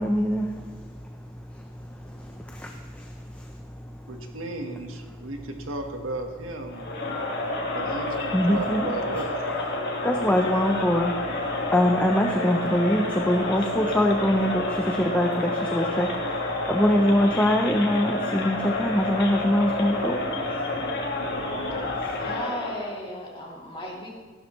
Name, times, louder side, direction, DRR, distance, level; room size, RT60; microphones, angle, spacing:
voice 1, 0.0-4.3 5.1-5.3 7.4-7.8 8.3-8.9 9.5-22.3, equal, 10° left, 2 dB, 0.7 m, -25 dB
voice 2, 4.1-6.9 7.7-9.3, right 2 dB, 85° right, 4 dB, 1.4 m, -35 dB
Crowd, 6.7-23.0, left 2 dB, 55° left, 1.8 m, -29 dB
voice 3, 22.2-24.1, left 1 dB, 25° left, -4 dB, 2.9 m, -35 dB
15.5 x 12.0 x 3.2 m, 1.5 s
head